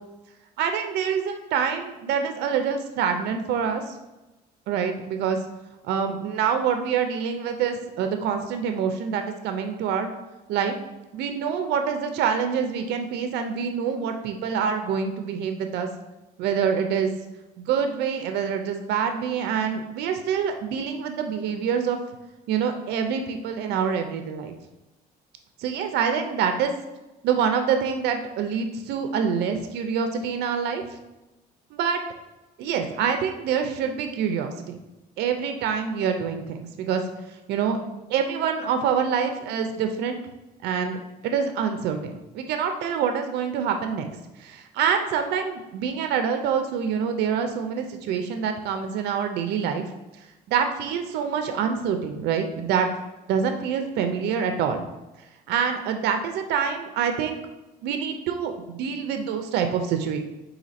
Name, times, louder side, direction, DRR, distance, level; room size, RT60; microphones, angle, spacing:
voice 1, 0.6-4.0 4.7-5.4 5.8-10.1 10.5-10.8 11.1-15.9 16.4-17.1 17.6-22.0 22.5-24.5 25.6-26.7 27.2-30.8 31.7-32.0 32.6-34.8 35.2-37.0 37.5-37.8 38.1-40.2 40.6-44.1 44.4-49.8 50.2-52.9 53.3-54.8 55.5-57.4 57.8-60.2, right 7 dB, 80° right, 6 dB, 0.5 m, -26 dB
4.1 x 2.8 x 4.0 m, 1.0 s
cardioid pair, 110°, 17 cm